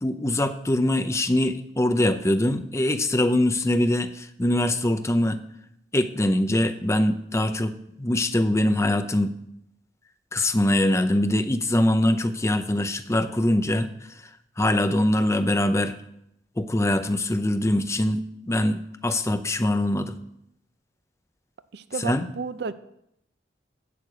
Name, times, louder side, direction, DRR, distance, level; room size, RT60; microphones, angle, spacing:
voice 1, 0.0-5.4 5.9-9.3 10.3-14.2 14.6-16.0 16.6-20.2 22.0-22.3, left 1 dB, 15° left, 9 dB, 0.6 m, -23 dB
voice 2, 21.7-22.7, right 5 dB, 60° right, 13 dB, 0.5 m, -32 dB
8.5 x 6.7 x 8.0 m, 0.79 s
head